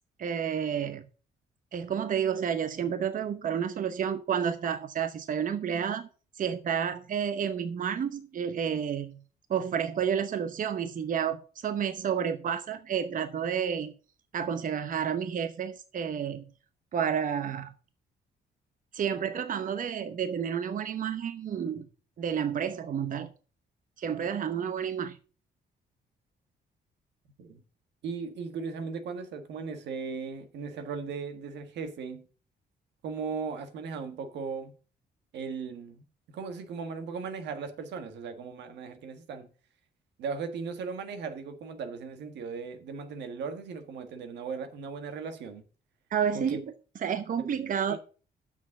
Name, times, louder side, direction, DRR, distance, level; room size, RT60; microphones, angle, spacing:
voice 1, 0.2-1.0 1.7-6.1 6.4-9.2 9.5-13.9 14.3-16.4 16.9-17.7 18.9-21.8 22.2-23.3 24.0-25.2 46.1-46.6 47.0-48.0, right 8 dB, 50° right, 0.9 m, -30 dB
voice 2, 28.0-32.2 33.0-34.8 35.3-39.5 40.2-45.6 46.3-46.6 47.4-48.0, right 5 dB, 85° right, 1.5 m, -37 dB
7.4 x 6.3 x 7.1 m
cardioid pair, 105°, 17 cm